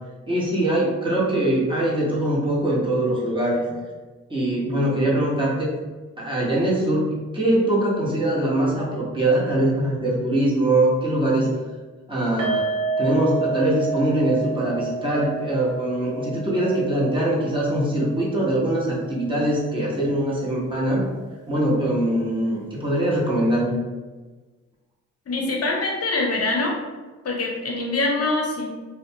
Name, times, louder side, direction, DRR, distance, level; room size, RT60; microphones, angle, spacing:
voice 1, 0.3-3.6 4.3-5.7 6.2-7.1 7.3-11.5 12.1-21.0 21.5-23.7, right 1 dB, 15° right, -6 dB, 1.0 m, -22 dB
sound 1, 12.4-19.6 19.9-20.0 20.4-20.5, right 4 dB, 70° right, 0.6 m, -30 dB
voice 2, 25.3-26.7 27.2-28.7, left 2 dB, 45° left, 0 dB, 0.7 m, -24 dB
2.4 x 2.2 x 2.7 m, 1.3 s
supercardioid pair, 45°, 33 cm